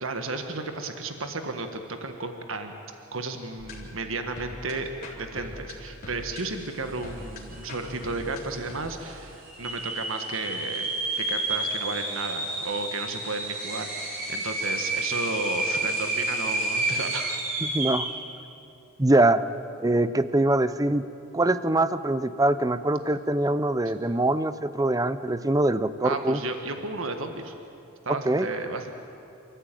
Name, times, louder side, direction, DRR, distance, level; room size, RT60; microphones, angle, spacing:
voice 1, 0.0-2.7 3.1-4.9 5.2-17.4 26.0-27.5 28.0-28.9, right 3 dB, 65° right, 6 dB, 1.5 m, -33 dB
sound 1, 3.6-8.7, left 1 dB, 45° left, 3.9 m, -42 dB
sound 2, 7.2-7.3 7.5-8.1 8.6-8.7 9.4-18.2, right 2 dB, 40° right, 4.1 m, -30 dB
voice 2, 17.6-18.1 19.0-19.4 19.8-21.0 21.3-26.4 28.3-28.5, right 2 dB, 15° right, 14 dB, 0.6 m, -23 dB
28.0 x 14.5 x 9.1 m, 2.7 s
head